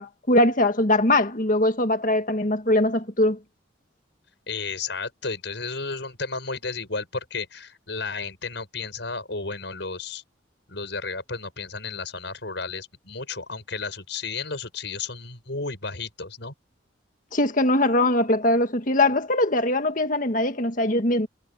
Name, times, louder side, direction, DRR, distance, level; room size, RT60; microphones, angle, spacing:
voice 1, 0.0-3.4 17.3-21.3, left 1 dB, 45° left, 1.8 m, -21 dB
voice 2, 4.5-10.2 10.7-16.5, left 4 dB, 65° left, 6.7 m, -33 dB
head